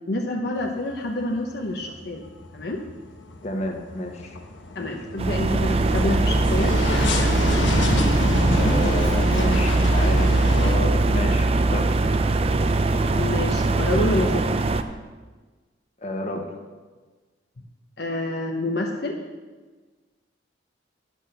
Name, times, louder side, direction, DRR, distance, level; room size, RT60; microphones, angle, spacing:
voice 1, 0.0-2.2 2.5-2.8 4.7-6.8 13.2-14.5 18.0-19.2, left 1 dB, 60° left, 1 dB, 0.9 m, -27 dB
sound 1, 0.6-1.2 1.5-10.7, left 1 dB, 85° left, 1.1 m, -27 dB
voice 2, 3.4-4.4 4.8-4.9 8.5-11.8 16.0-16.5, left 1 dB, 40° left, 3 dB, 1.3 m, -30 dB
sound 2, 5.2-14.8, right 2 dB, 30° right, 0.5 m, -21 dB
11.0 x 6.4 x 6.7 m, 1.3 s
head